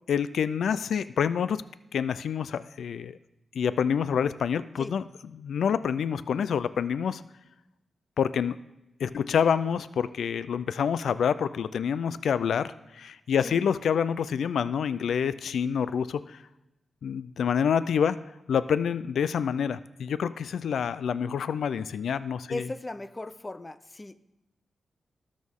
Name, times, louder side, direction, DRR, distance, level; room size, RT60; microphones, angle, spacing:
voice 1, 0.1-1.6 1.9-3.2 3.6-5.0 5.4-7.2 8.2-8.6 9.0-16.4 17.0-18.2 18.5-22.6, left 7 dB, 90° left, 15 dB, 0.3 m, -27 dB
voice 2, 22.5-24.1, left 2 dB, 20° left, 13 dB, 0.5 m, -37 dB
19.0 x 6.3 x 3.6 m, 0.97 s
wide cardioid pair, 110°, 0 cm